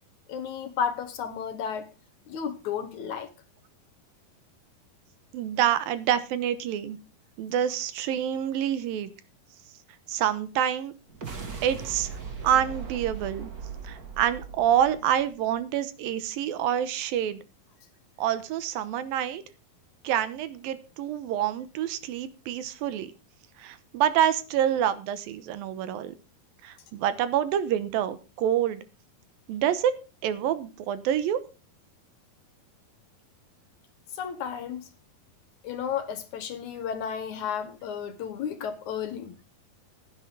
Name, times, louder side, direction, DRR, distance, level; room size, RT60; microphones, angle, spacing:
voice 1, 0.3-1.9 2.3-3.3 34.1-34.9 35.6-39.3, left 7 dB, 65° left, 2.3 m, -33 dB
voice 2, 5.3-7.0 7.4-9.1 10.1-10.9 11.6-12.1 12.4-13.5 13.8-17.4 18.2-19.4 20.0-23.1 23.6-26.1 26.6-28.8 29.5-31.4, right 10 dB, 80° right, 2.8 m, -27 dB
sound 1, 11.1-15.6, right 6 dB, 30° right, 2.0 m, -39 dB
15.5 x 10.0 x 3.9 m
omnidirectional pair, 4.2 m